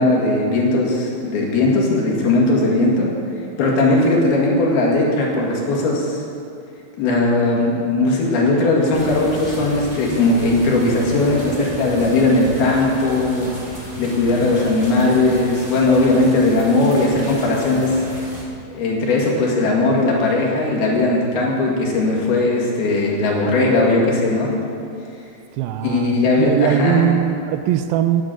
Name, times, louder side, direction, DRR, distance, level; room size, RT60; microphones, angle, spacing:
voice 1, 0.0-3.1 3.6-6.2 7.0-13.5 14.0-18.0 18.7-24.5 25.8-27.1, left 2 dB, 80° left, -2 dB, 4.0 m, -18 dB
sound 1, 8.9-18.4, equal, 15° right, 2.4 m, -34 dB
voice 2, 25.6-28.2, right 11 dB, 80° right, 10 dB, 2.3 m, -20 dB
9.6 x 9.3 x 9.1 m, 2.6 s
omnidirectional pair, 4.4 m